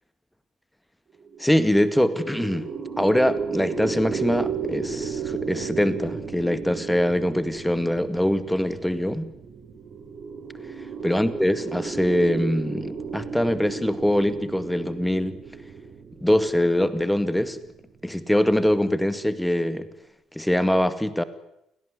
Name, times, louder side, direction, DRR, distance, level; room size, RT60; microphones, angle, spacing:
sound 1, 1.2-18.7, right 6 dB, 45° right, 5.1 m, -34 dB
voice 1, 1.4-2.7 3.0-9.3 11.0-15.4 16.2-17.6 18.0-19.9 20.3-21.2, left 1 dB, 5° left, 13 dB, 2.0 m, -23 dB
29.5 x 18.5 x 9.8 m, 0.83 s
figure-of-eight pair, 50°, 0 cm